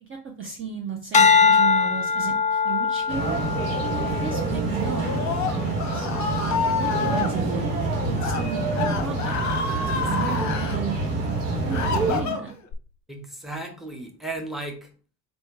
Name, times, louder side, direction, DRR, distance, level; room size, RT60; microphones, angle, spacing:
voice 1, 0.0-3.4 4.0-5.1 5.4-6.1 6.7-7.7 7.9-9.4 9.7-11.0 11.6-12.5, right 6 dB, 25° right, 2 dB, 0.7 m, -34 dB
sound 1, 1.1-5.6 6.2-6.6, left 5 dB, 15° left, 0.4 m, -22 dB
sound 2, 3.1-12.2, right 3 dB, 85° right, 1.5 m, -27 dB
Screaming, 4.9-7.3 8.1-8.4 8.7-10.8 11.3-12.7, left 5 dB, 35° left, 0.9 m, -28 dB
voice 2, 9.9-10.3 13.1-14.9, right 2 dB, ahead, 2 dB, 1.0 m, -35 dB
3.4 x 2.7 x 4.5 m, 0.40 s
hypercardioid pair, 75°, 48 cm